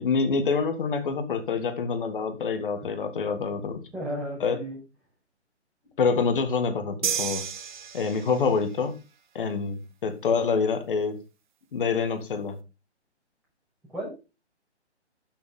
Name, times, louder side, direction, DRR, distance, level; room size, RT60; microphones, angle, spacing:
voice 1, 0.0-3.8 4.4-4.6 6.0-7.4 7.9-9.0 9.3-11.2 11.7-12.6, left 5 dB, 45° left, 9 dB, 2.0 m, -26 dB
voice 2, 3.9-4.8 13.9-14.2, equal, ahead, -6 dB, 6.0 m, -34 dB
sound 1, 7.0-8.6, right 8 dB, 40° right, 1.3 m, -31 dB
11.5 x 7.4 x 3.8 m, 0.29 s
figure-of-eight pair, 135°, 35 cm